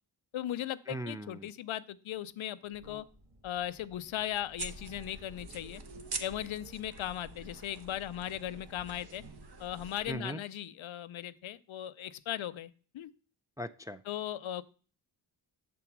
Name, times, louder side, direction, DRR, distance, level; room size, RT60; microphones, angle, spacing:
voice 1, 0.3-3.0 3.4-5.8 6.2-9.2 9.6-13.1 14.1-14.6, left 12 dB, 80° left, 15 dB, 0.6 m, -38 dB
voice 2, 0.9-1.5 10.1-10.4 13.6-14.0, right 1 dB, 10° right, 7 dB, 0.3 m, -39 dB
sound 1, 2.7-8.4, equal, 35° right, 1.8 m, -58 dB
sound 2, 4.6-10.1, right 4 dB, 55° right, 1.1 m, -45 dB
6.9 x 3.7 x 5.9 m, 0.38 s
cardioid pair, 65°, 48 cm